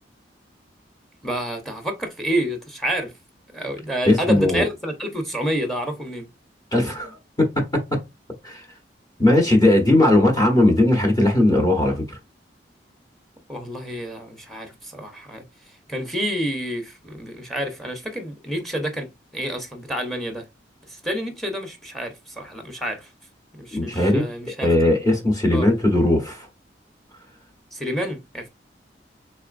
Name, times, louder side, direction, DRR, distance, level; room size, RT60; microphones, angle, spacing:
voice 1, 1.2-3.1 3.5-6.3 13.5-15.4 15.9-19.1 19.3-20.4 20.9-23.1 23.5-24.7 25.5-25.7 27.7-28.5, equal, ahead, 0.7 m, -28 dB
voice 2, 4.1-4.6 6.7-7.5 8.4-8.6 9.2-12.2 23.7-24.2 24.6-26.5, left 1 dB, 20° left, 0.9 m, -18 dB
4.1 x 3.3 x 2.5 m
head